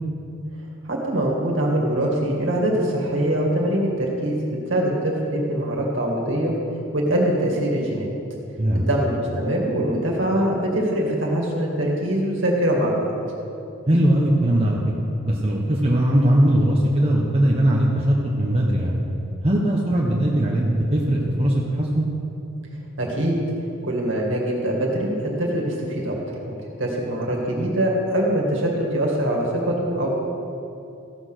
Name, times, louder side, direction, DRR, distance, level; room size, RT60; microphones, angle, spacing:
voice 1, 0.8-4.4 4.7-6.5 6.9-8.2 8.7-13.0 23.0-23.4 23.8-26.1 26.4-30.1, right 1 dB, 65° right, -2 dB, 2.2 m, -23 dB
voice 2, 8.6-8.9 13.9-14.9 15.2-19.0 19.4-22.1, right 1 dB, 30° right, -3 dB, 1.0 m, -20 dB
15.0 x 6.1 x 6.3 m, 2.7 s
head